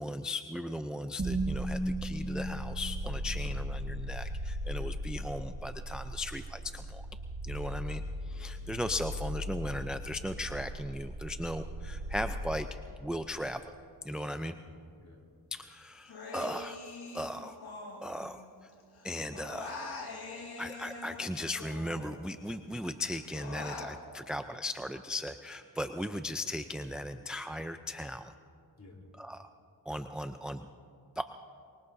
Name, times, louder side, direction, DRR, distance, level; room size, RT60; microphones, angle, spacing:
voice 1, 0.0-7.0 7.4-12.7 13.0-13.7 14.0-14.6 15.5-16.8 17.1-17.6 18.0-18.4 19.0-19.8 20.6-28.3 29.2-29.5 29.9-30.7 31.2-31.3, left 1 dB, ahead, 8 dB, 0.5 m, -37 dB
sound 1, 1.2-13.3, right 1 dB, 30° right, 1.7 m, -37 dB
voice 2, 3.2-3.6 4.7-5.0 7.4-7.9 8.3-8.6 14.3-15.3 28.8-29.1, left 2 dB, 40° left, 0 dB, 3.6 m, -55 dB
Human voice, 16.1-18.7 19.0-22.5 22.8-23.9, left 3 dB, 60° left, 2.2 m, -44 dB
24.0 x 21.5 x 2.7 m, 2.4 s
cardioid pair, 60°, 42 cm